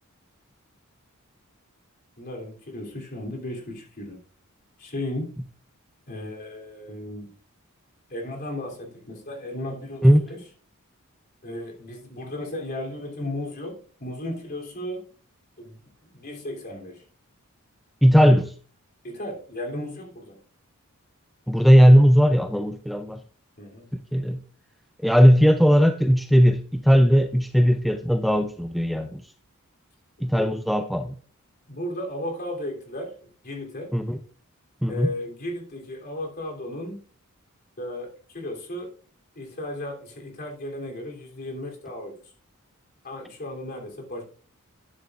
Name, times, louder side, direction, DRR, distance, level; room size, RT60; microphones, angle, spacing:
voice 1, 2.2-4.2 4.8-5.3 6.1-7.3 8.1-10.4 11.4-15.1 15.6-17.0 19.0-20.4 23.6-23.9 30.3-30.5 31.7-33.9 34.9-37.0 37.8-38.9 39.3-42.1 43.0-44.2, left 1 dB, 45° left, 1 dB, 3.3 m, -35 dB
voice 2, 18.0-18.5 21.5-23.2 24.1-24.4 25.0-29.2 30.2-31.1 33.9-34.2 34.8-35.1, equal, ahead, 7 dB, 0.5 m, -18 dB
12.5 x 9.8 x 2.5 m, 0.40 s
head